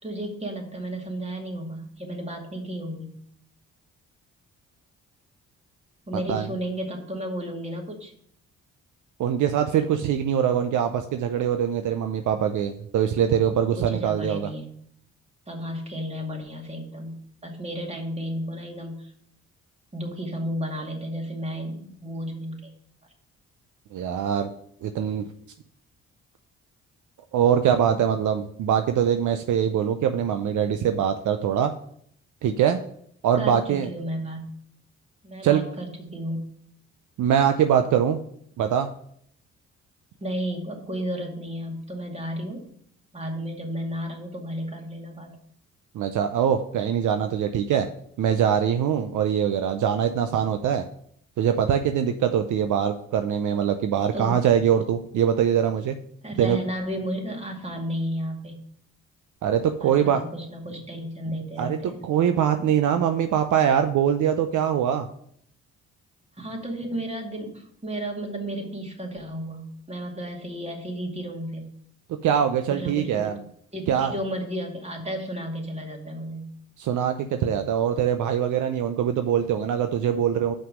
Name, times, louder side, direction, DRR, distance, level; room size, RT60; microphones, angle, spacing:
voice 1, 0.0-3.1 6.1-8.1 13.8-14.7 15.5-17.2 17.4-19.1 19.9-22.7 33.3-34.5 35.2-36.5 40.2-42.7 43.1-45.4 54.1-54.4 56.2-58.6 59.8-62.0 66.4-71.7 72.7-73.3 73.7-76.5, equal, 20° right, 1 dB, 2.3 m, -33 dB
voice 2, 9.2-14.5 23.9-24.5 24.8-25.3 27.3-31.7 32.4-32.8 33.2-33.9 35.4-35.6 37.2-38.2 38.6-38.9 45.9-47.9 48.2-50.8 51.4-56.0 56.4-56.6 59.4-60.2 61.6-65.1 72.2-73.4 73.9-74.2 76.8-80.5, right 9 dB, 65° right, 7 dB, 0.6 m, -23 dB
5.7 x 5.6 x 6.1 m, 0.66 s
supercardioid pair, 55°, 32 cm